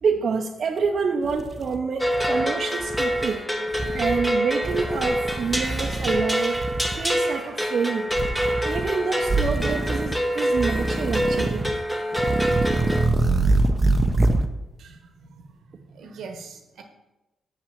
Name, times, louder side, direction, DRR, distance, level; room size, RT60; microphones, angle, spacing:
voice 1, 0.0-3.4 3.9-6.6 7.0-8.1 8.6-11.6, right 5 dB, 55° right, 2 dB, 0.8 m, -27 dB
sound 1, 0.8-0.9 1.3-2.4 2.8-3.2 3.7-4.3 4.6-6.2 6.5-7.0 8.1-8.9 9.2-10.2 10.5-11.7 12.1-14.5, right 2 dB, 25° right, 0.8 m, -25 dB
sound 2, 2.0-13.1, equal, 5° left, 1.2 m, -26 dB
voice 2, 14.8-16.8, right 5 dB, 80° right, 5 dB, 1.2 m, -43 dB
6.8 x 5.8 x 6.9 m, 1.0 s
cardioid pair, 85°, 0 cm